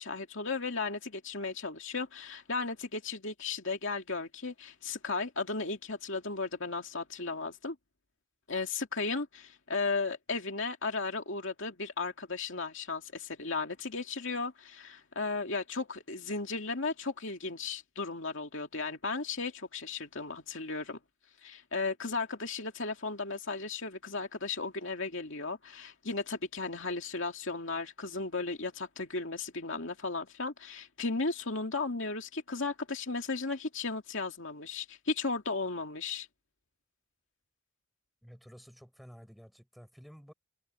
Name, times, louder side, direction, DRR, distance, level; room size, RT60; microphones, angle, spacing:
voice 1, 0.0-7.8 8.5-21.0 21.4-36.3, left 3 dB, 60° left, 2.6 m, -35 dB
voice 2, 38.2-40.3, equal, ahead, 6.9 m, -52 dB
head